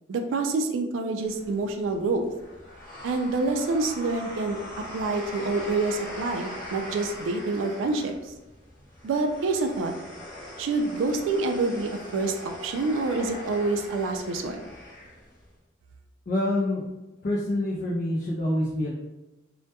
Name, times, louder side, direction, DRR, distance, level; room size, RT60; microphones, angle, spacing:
voice 1, 0.1-2.3 3.0-8.3 9.0-9.9 10.6-14.6, right 3 dB, 80° right, 5 dB, 0.3 m, -27 dB
sound 1, 1.2-15.5, left 1 dB, 20° left, 0.8 m, -41 dB
voice 2, 16.3-16.8 17.2-18.9, left 1 dB, 45° left, -5 dB, 0.4 m, -26 dB
2.2 x 2.1 x 2.8 m, 1.0 s
head